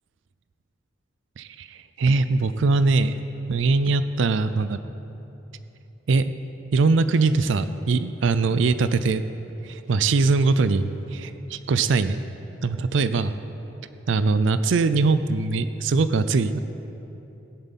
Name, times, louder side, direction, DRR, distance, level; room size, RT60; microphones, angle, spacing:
voice 1, 1.4-3.2 3.5-4.8 6.1-6.3 6.7-9.2 9.6-12.2 12.6-13.4 14.1-16.6, right 3 dB, 80° right, 12 dB, 0.4 m, -22 dB
16.5 x 10.5 x 4.1 m, 3.0 s
head